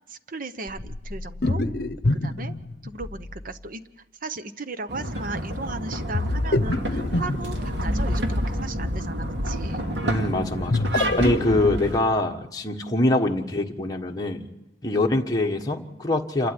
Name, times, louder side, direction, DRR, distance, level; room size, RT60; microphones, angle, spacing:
voice 1, 0.1-1.6 2.2-2.6 2.8-3.9 4.2-9.8 11.6-11.7 14.9-15.1, right 3 dB, 50° right, 11 dB, 1.0 m, -36 dB
sound 1, 0.7-3.5 6.1-8.2 10.5-12.0, left 2 dB, 60° left, 0.9 m, -27 dB
sound 2, 4.9-12.0, equal, 75° right, 2.3 m, -29 dB
voice 2, 10.0-14.5 14.8-16.5, left 2 dB, 20° left, 1 dB, 1.4 m, -24 dB
28.5 x 12.5 x 9.8 m, 1.0 s
head